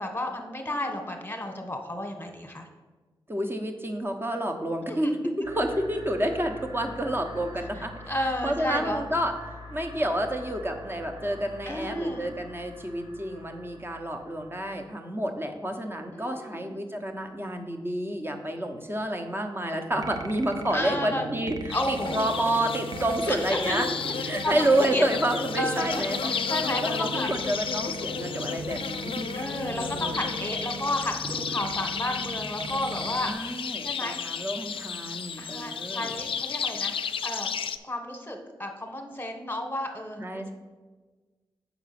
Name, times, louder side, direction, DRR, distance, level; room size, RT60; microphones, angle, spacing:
voice 1, 0.0-2.7 4.9-5.1 8.1-9.0 11.6-12.2 16.1-16.6 20.7-21.3 21.7-22.2 23.3-23.8 24.2-25.0 25.6-27.3 29.4-34.3 35.4-37.5 37.8-40.2, left 1 dB, 20° left, 4 dB, 1.2 m, -32 dB
voice 2, 3.3-7.9 8.4-9.3 9.7-23.9 24.3-26.3 26.8-29.3 29.7-30.3 33.2-36.3 40.2-40.5, right 1 dB, 25° right, 4 dB, 1.0 m, -29 dB
sound 1, 5.4-14.9, equal, 65° right, 2.5 m, -44 dB
sound 2, 19.9-33.3, right 3 dB, 45° right, 0.5 m, -39 dB
sound 3, 21.7-37.8, left 7 dB, 70° left, 0.4 m, -33 dB
6.0 x 4.5 x 5.9 m, 1.3 s
cardioid pair, 55°, 9 cm